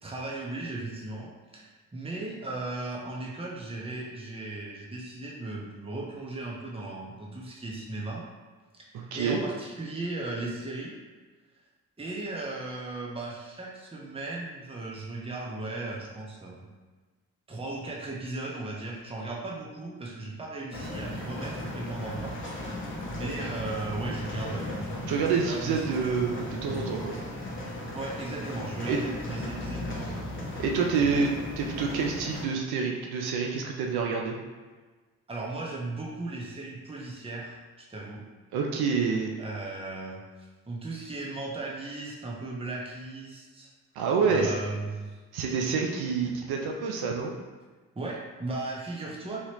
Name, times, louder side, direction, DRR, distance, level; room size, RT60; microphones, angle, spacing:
voice 1, 0.0-8.3 8.7-10.9 12.0-16.7 17.5-22.4 23.1-24.8 25.4-26.1 27.9-30.3 35.3-38.2 39.4-43.7 44.3-45.2 47.9-49.4, right 2 dB, 15° right, -3 dB, 0.8 m, -37 dB
voice 2, 8.9-9.4 25.1-27.2 28.9-29.0 30.6-34.4 38.5-39.3 44.0-44.5 45.3-47.3, right 5 dB, 75° right, 1 dB, 0.5 m, -27 dB
sound 1, 20.7-32.4, left 1 dB, 30° left, 0.9 m, -36 dB
3.0 x 2.8 x 2.8 m, 1.3 s
hypercardioid pair, 40°, 38 cm